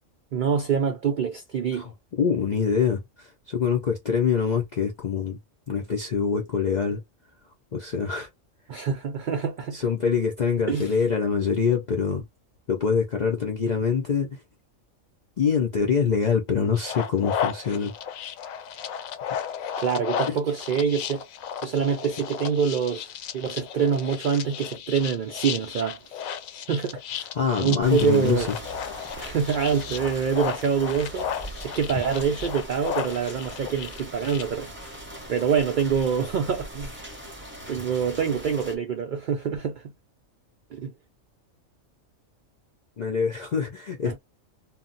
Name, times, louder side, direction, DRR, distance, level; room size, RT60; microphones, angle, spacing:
voice 1, 0.3-1.9 8.7-9.8 10.7-10.9 19.8-21.2 21.6-26.2 26.7-27.3 27.6-28.5 29.2-31.3 31.6-35.0 35.3-37.0 37.7-39.8 40.7-40.9 44.0-44.2, right 7 dB, 75° right, 0.4 m, -26 dB
voice 2, 1.8-5.4 5.7-7.0 7.7-8.3 9.7-12.2 12.7-14.4 15.4-17.9 20.3-20.4 27.4-28.5 43.0-44.2, left 6 dB, 65° left, 0.4 m, -25 dB
sound 1, 16.7-34.4, left 8 dB, 80° left, 1.0 m, -34 dB
sound 2, 27.8-38.7, right 1 dB, 10° right, 0.7 m, -40 dB
2.3 x 2.0 x 3.8 m
omnidirectional pair, 1.4 m